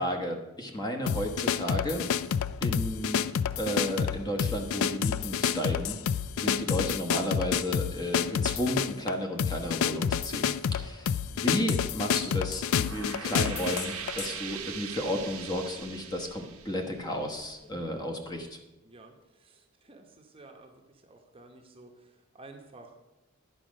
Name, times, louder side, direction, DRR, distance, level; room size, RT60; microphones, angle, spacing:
voice 1, 0.0-2.1 2.6-3.3 3.6-6.0 6.4-18.6, equal, 20° left, 2 dB, 1.1 m, -33 dB
sound 1, 1.1-14.3, left 8 dB, 65° left, 0.3 m, -29 dB
sound 2, 12.5-17.7, right 7 dB, 90° right, 1.1 m, -41 dB
voice 2, 18.8-23.0, right 2 dB, 25° right, 3 dB, 0.9 m, -52 dB
10.5 x 5.0 x 6.3 m, 1.0 s
head